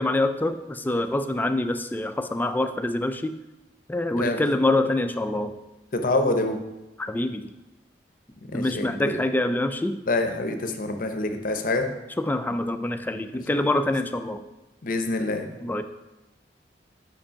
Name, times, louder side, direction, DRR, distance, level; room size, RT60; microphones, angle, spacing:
voice 1, 0.0-3.3 3.9-5.5 7.0-7.4 8.5-10.0 12.2-14.4 15.6-15.8, left 2 dB, 10° left, 8 dB, 0.3 m, -25 dB
voice 2, 4.2-4.5 5.9-6.6 8.5-9.2 10.1-11.9 14.8-15.5, left 2 dB, 50° left, 6 dB, 0.7 m, -26 dB
5.3 x 5.2 x 5.6 m, 1.0 s
head